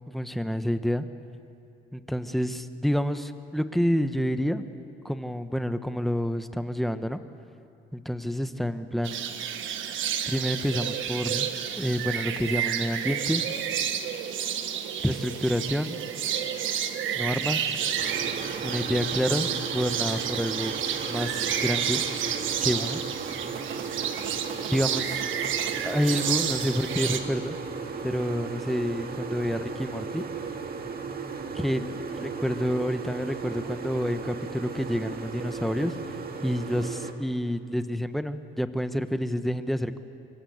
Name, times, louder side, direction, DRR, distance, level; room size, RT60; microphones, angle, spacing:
voice 1, 0.1-1.1 1.9-4.6 5.0-7.2 7.9-9.2 10.3-11.5 11.8-13.4 15.0-16.0 17.1-17.7 18.6-20.8 21.1-22.0 22.6-23.0 24.7-25.2 25.8-27.6 28.0-30.2 31.5-35.9 36.4-40.0, equal, ahead, 9 dB, 1.3 m, -28 dB
sound 1, 9.0-27.2, right 9 dB, 80° right, 1.5 m, -30 dB
sound 2, 18.0-37.1, right 5 dB, 50° right, 2.1 m, -36 dB
25.0 x 23.0 x 8.2 m, 2.6 s
cardioid pair, 90°, 20 cm